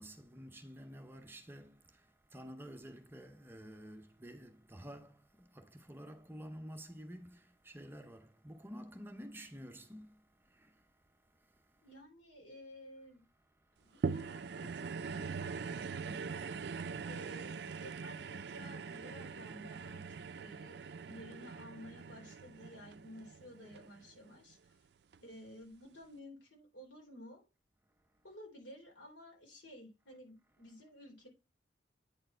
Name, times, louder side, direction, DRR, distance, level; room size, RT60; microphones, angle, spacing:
voice 1, 0.0-12.0 13.4-14.2 17.0-17.1 30.1-30.2 30.6-30.7, equal, 10° right, 0.7 m, -51 dB
voice 2, 11.8-13.2 13.8-16.6 17.0-24.8 25.2-27.4 28.2-31.3, left 1 dB, 80° left, 3.7 m, -54 dB
sound 1, 14.0-24.5 25.1-25.2, right 5 dB, 65° right, 0.4 m, -42 dB
9.0 x 4.5 x 4.4 m
head